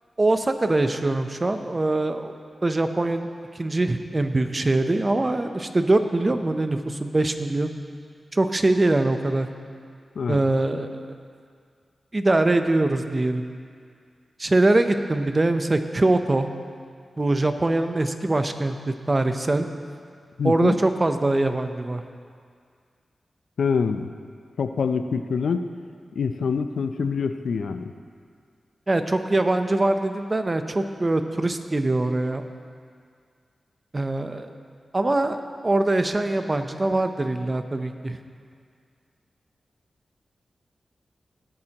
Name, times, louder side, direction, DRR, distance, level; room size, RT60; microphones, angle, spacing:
voice 1, 0.2-2.3 2.6-3.3 3.5-7.7 8.3-9.5 10.3-11.0 12.1-13.4 14.4-16.5 17.2-19.7 20.4-22.0 28.9-32.4 33.9-34.5 34.9-38.2, right 2 dB, 30° right, 8 dB, 0.6 m, -23 dB
voice 2, 20.4-20.8 23.6-24.1 24.6-25.7 26.1-27.9, left 5 dB, 85° left, 9 dB, 0.4 m, -25 dB
17.5 x 8.7 x 2.9 m, 2.2 s
wide cardioid pair, 85°, 0 cm